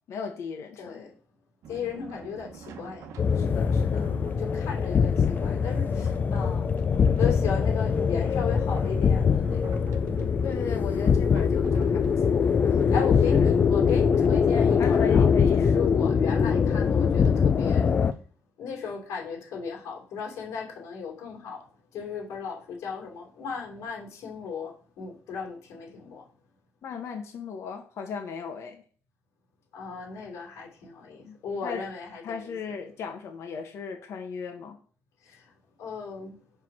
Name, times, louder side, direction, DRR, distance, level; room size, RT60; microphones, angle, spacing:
voice 1, 0.1-1.1 3.3-4.2 10.4-13.5 14.8-15.7 26.8-28.8 31.2-31.4 31.6-31.8 32.2-34.8, left 5 dB, 60° left, 1.2 m, -37 dB
voice 2, 0.8-1.1 1.7-3.1 4.1-6.8 7.2-9.8 12.9-17.9 18.6-21.6 21.9-26.2 29.7-32.5 35.2-35.5 35.8-36.4, left 6 dB, 90° left, 2.8 m, -36 dB
sound 1, 1.6-18.2, right 6 dB, 75° right, 1.1 m, -45 dB
sound 2, 3.2-18.1, left 6 dB, 35° left, 0.4 m, -23 dB
5.8 x 4.7 x 6.0 m
cardioid pair, 140°, 5 cm